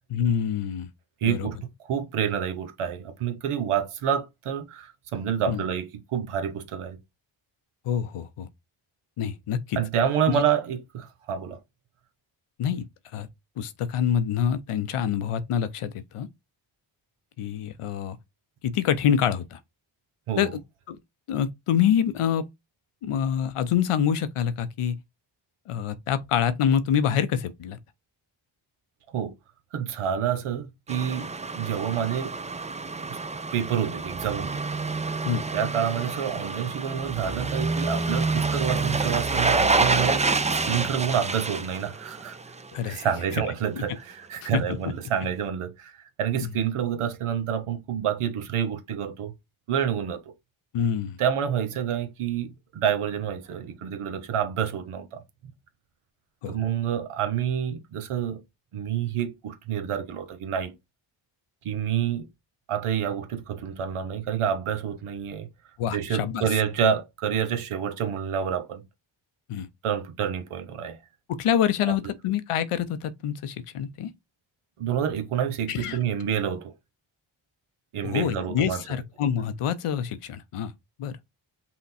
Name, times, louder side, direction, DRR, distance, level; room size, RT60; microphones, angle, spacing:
voice 1, 0.1-0.9 1.2-1.5 5.5-5.6 7.9-8.5 9.2-9.8 10.3-10.4 12.6-12.8 13.1-13.3 13.6-16.3 17.4-18.2 18.6-19.6 20.4-20.5 20.9-21.0 21.3-22.4 23.0-25.0 25.7-27.8 35.2-35.4 42.7-43.1 44.4-44.6 46.4-46.5 50.7-51.2 56.4-56.5 65.8-66.4 69.5-69.7 71.3-74.1 75.7-76.0 78.0-80.7 81.0-81.1, left 8 dB, 90° left, 0.6 m, -26 dB
voice 2, 1.2-7.0 9.8-11.6 20.3-20.5 29.1-29.3 29.7-31.3 31.5-32.3 33.1-33.2 33.5-34.6 35.5-42.4 42.8-49.3 49.7-50.3 51.2-55.2 56.5-58.4 58.7-60.7 61.6-62.3 62.7-65.5 65.9-68.8 69.8-71.0 71.9-72.0 74.8-76.7 77.9-79.0, right 8 dB, 90° right, 0.8 m, -28 dB
sound 1, 30.9-42.8 43.1-43.2, right 3 dB, 15° right, 0.4 m, -28 dB
5.7 x 2.2 x 4.0 m
cardioid pair, 50°, 50 cm